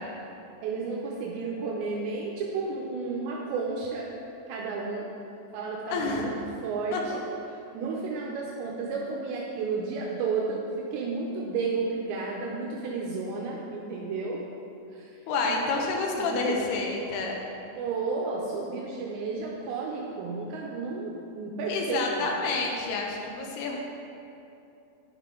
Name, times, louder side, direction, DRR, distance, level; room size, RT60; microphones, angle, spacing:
voice 1, 0.6-4.1 4.5-5.1 5.5-6.3 6.6-7.0 7.7-14.4 14.9-15.1 15.5-15.9 16.1-16.6 17.0-17.2 17.8-22.3, right 4 dB, 80° right, -2 dB, 2.8 m, -32 dB
voice 2, 5.9-6.2 6.9-7.2 15.3-17.4 21.7-23.8, left 3 dB, 75° left, 0 dB, 2.5 m, -29 dB
11.0 x 5.4 x 3.7 m, 2.7 s
omnidirectional pair, 5.3 m